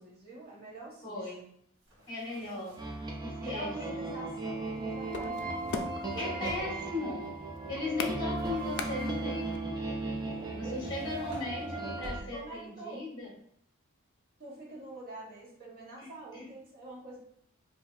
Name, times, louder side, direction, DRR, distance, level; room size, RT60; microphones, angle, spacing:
voice 1, 0.0-1.3 3.4-5.9 6.1-6.7 10.3-10.8 11.2-11.9 12.3-13.1 14.4-17.2, right 2 dB, 45° right, -5 dB, 1.3 m, -45 dB
voice 2, 1.0-1.5 2.1-2.8 3.2-4.3 6.2-7.3 7.7-9.5 10.5-13.3 16.0-16.5, left 2 dB, 20° left, -4 dB, 1.3 m, -38 dB
sound 1, 1.8-3.1 5.1-6.9 8.3-9.5 10.7-12.7, equal, 75° right, 1.2 m, -51 dB
sound 2, 2.8-12.2, right 2 dB, 20° right, 0.4 m, -36 dB
sound 3, 4.5-9.6, left 4 dB, 55° left, 0.4 m, -40 dB
4.9 x 2.7 x 2.5 m, 0.68 s
head